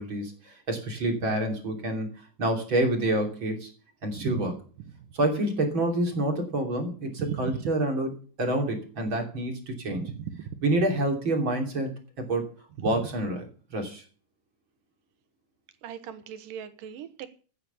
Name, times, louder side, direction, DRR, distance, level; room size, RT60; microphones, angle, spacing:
voice 1, 0.0-2.1 2.4-3.7 4.0-4.5 5.1-8.1 8.4-10.0 10.6-12.5 12.8-13.4 13.7-14.0, right 1 dB, 35° right, 3 dB, 3.6 m, -27 dB
voice 2, 4.1-4.5 7.2-7.6 9.9-10.6 12.8-12.9 15.8-17.3, right 9 dB, 75° right, 11 dB, 2.8 m, -37 dB
14.5 x 9.7 x 7.1 m, 0.40 s
omnidirectional pair, 4.0 m